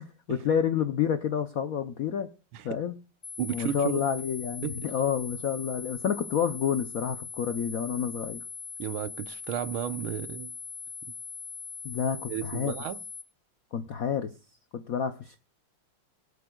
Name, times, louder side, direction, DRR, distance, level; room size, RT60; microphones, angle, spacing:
voice 1, 0.0-2.3 2.6-2.9 3.5-8.4 11.8-12.7 13.7-14.3 14.7-15.4, left 8 dB, 70° left, 0.8 m, -29 dB
sound 1, 3.2-13.2, left 5 dB, 25° left, 1.3 m, -41 dB
voice 2, 3.4-4.0 4.6-4.8 8.8-10.5 12.3-13.0, right 11 dB, 80° right, 1.5 m, -33 dB
23.0 x 8.3 x 2.3 m
omnidirectional pair, 2.3 m